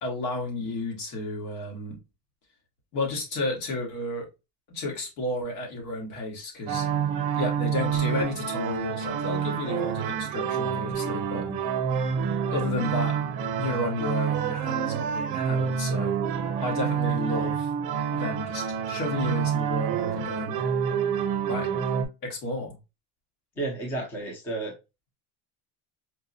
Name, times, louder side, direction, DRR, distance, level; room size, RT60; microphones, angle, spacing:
voice 1, 0.0-2.0 2.9-4.3 4.7-6.9 7.3-11.4 12.5-13.2 13.6-16.1 16.6-17.7 18.1-20.6 21.5-21.7 22.2-22.7, left 2 dB, 75° left, 1.7 m, -32 dB
sound 1, 6.7-22.1, right 7 dB, 55° right, 0.7 m, -28 dB
voice 2, 23.6-24.7, right 2 dB, 5° left, 0.3 m, -32 dB
4.4 x 2.1 x 2.6 m
cardioid pair, 180°, 45 cm